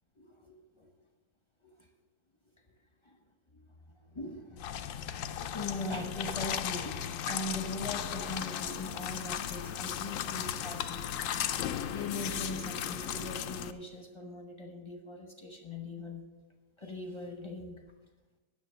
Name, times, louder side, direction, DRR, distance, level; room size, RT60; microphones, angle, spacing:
voice 1, 0.2-0.9 1.6-1.7 3.0-3.2 3.5-3.6 4.1-11.3 11.9-16.2 16.8-17.8, left 2 dB, 35° left, 3 dB, 0.4 m, -41 dB
sound 1, 4.6-13.7, left 10 dB, 85° left, 0.7 m, -36 dB
10.0 x 6.8 x 6.3 m, 1.2 s
omnidirectional pair, 1.9 m